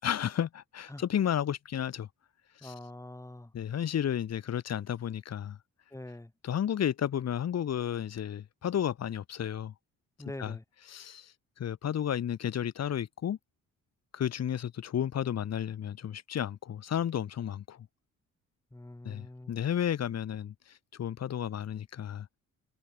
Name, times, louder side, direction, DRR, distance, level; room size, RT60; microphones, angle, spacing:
voice 1, 0.0-2.1 2.6-2.7 3.5-5.6 6.4-9.7 10.4-10.6 10.9-13.4 14.1-17.9 19.0-22.3, left 9 dB, 60° left, 2.6 m, -32 dB
voice 2, 2.6-3.5 5.9-6.3 10.2-10.6 18.7-19.5, left 1 dB, 10° left, 3.7 m, -44 dB
cardioid pair, 90°, 30 cm